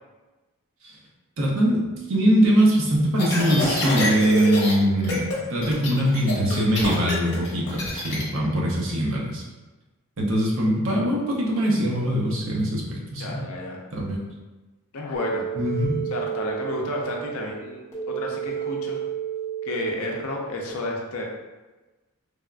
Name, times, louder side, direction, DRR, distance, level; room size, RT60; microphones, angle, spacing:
voice 1, 1.4-5.2 5.5-9.4 10.2-13.4 13.9-14.2 15.5-16.1, equal, 60° right, -3 dB, 0.6 m, -22 dB
sound 1, 3.2-4.7 5.0-5.4 5.6-8.2, left 1 dB, 55° left, 0.9 m, -27 dB
voice 2, 13.2-13.8 14.9-15.5 16.1-19.0 19.6-21.2, left 2 dB, 70° left, 0 dB, 0.5 m, -31 dB
sound 2, 15.1-20.7, right 9 dB, 15° left, 0.8 m, -32 dB
3.4 x 2.4 x 2.2 m, 1.2 s
head